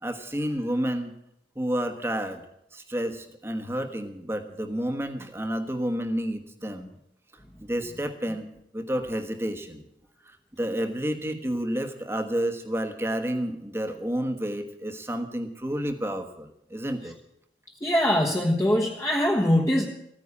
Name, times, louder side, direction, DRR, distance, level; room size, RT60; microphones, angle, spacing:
voice 1, 0.0-1.1 1.5-2.4 2.7-6.9 7.7-8.5 8.7-9.8 10.3-17.1, equal, 15° right, 6 dB, 1.3 m, -30 dB
voice 2, 17.8-19.9, left 1 dB, 15° left, -1 dB, 1.2 m, -22 dB
15.0 x 9.7 x 8.4 m, 0.79 s
head